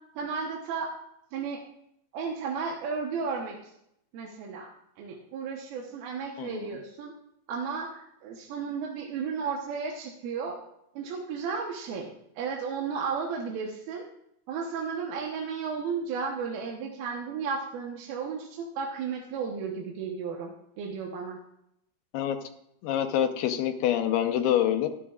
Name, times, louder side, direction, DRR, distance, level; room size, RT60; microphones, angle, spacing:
voice 1, 0.2-0.9 1.3-1.6 2.1-3.6 4.1-4.7 5.0-7.1 7.5-10.6 11.0-12.1 12.4-14.0 14.5-21.4, right 5 dB, 75° right, 0 dB, 2.9 m, -33 dB
voice 2, 6.4-6.7 22.1-22.4 22.8-24.9, left 10 dB, 90° left, 6 dB, 2.9 m, -26 dB
15.5 x 12.5 x 2.4 m, 0.78 s
omnidirectional pair, 4.4 m